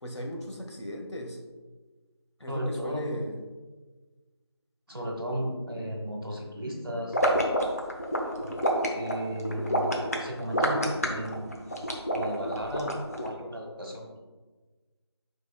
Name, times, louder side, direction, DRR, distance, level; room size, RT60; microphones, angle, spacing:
voice 1, 0.0-1.4 2.4-3.4, equal, 75° left, 2 dB, 1.3 m, -37 dB
voice 2, 2.5-3.2 4.9-7.2 8.4-8.5 8.9-11.6 12.1-14.2, equal, 55° right, 1 dB, 1.5 m, -35 dB
sound 1, 7.1-13.3, equal, 35° left, 0.8 m, -27 dB
10.0 x 4.7 x 2.3 m, 1.3 s
figure-of-eight pair, 170°, 14 cm